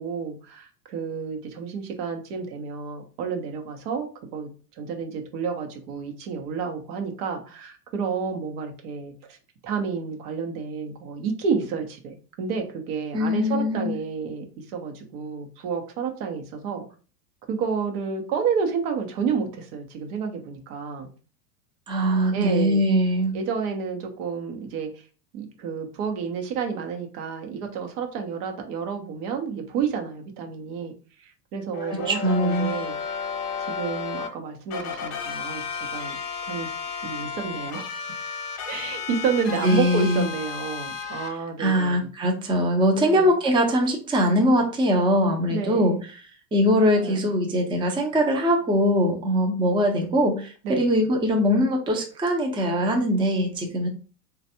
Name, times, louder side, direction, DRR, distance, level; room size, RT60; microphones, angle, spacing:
voice 1, 0.0-9.4 9.6-16.9 17.5-21.1 22.3-22.9 23.3-25.0 25.3-30.9 31.2-33.0 33.6-36.2 36.5-36.7 37.0-37.9 38.7-42.1 43.0-43.3 45.5-46.1 47.0-47.3 50.0-50.3 50.6-50.9, right 6 dB, 65° right, 3 dB, 1.0 m, -30 dB
voice 2, 13.1-14.0 21.9-23.3 31.9-32.7 39.6-40.3 41.6-46.0 46.5-53.9, equal, 10° right, 2 dB, 0.5 m, -22 dB
sound 1, 31.7-34.3 34.7-41.3, left 6 dB, 45° left, 0.9 m, -33 dB
3.2 x 2.5 x 2.7 m, 0.37 s
hypercardioid pair, 95°, 48 cm